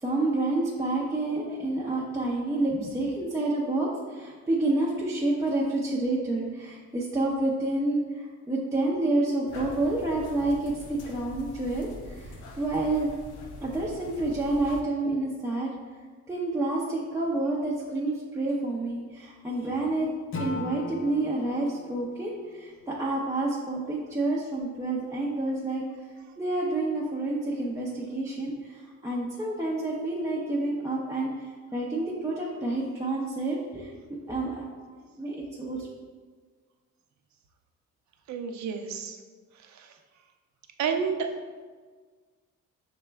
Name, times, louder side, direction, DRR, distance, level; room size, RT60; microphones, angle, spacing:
voice 1, 0.0-13.1 13.6-15.7 16.3-20.1 20.4-25.8 26.4-33.9 34.2-35.9, right 2 dB, 10° right, -5 dB, 0.5 m, -29 dB
sound 1, 9.5-14.8, left 1 dB, 80° left, 0.7 m, -43 dB
Acoustic guitar / Strum, 20.3-23.5, left 3 dB, 45° left, 0.7 m, -39 dB
voice 2, 38.3-39.2 39.5-40.0 40.8-41.3, right 6 dB, 65° right, 6 dB, 0.5 m, -30 dB
5.9 x 2.1 x 3.3 m, 1.5 s
cardioid pair, 90°, 30 cm